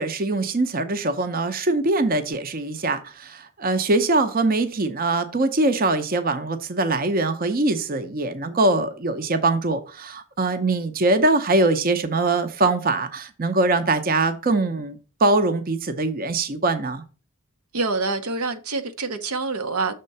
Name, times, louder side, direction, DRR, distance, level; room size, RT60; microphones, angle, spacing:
voice 1, 0.0-17.0, right 2 dB, 40° right, 0.6 m, -22 dB
voice 2, 17.7-19.9, right 3 dB, 90° right, 0.9 m, -26 dB
6.6 x 3.7 x 5.4 m
head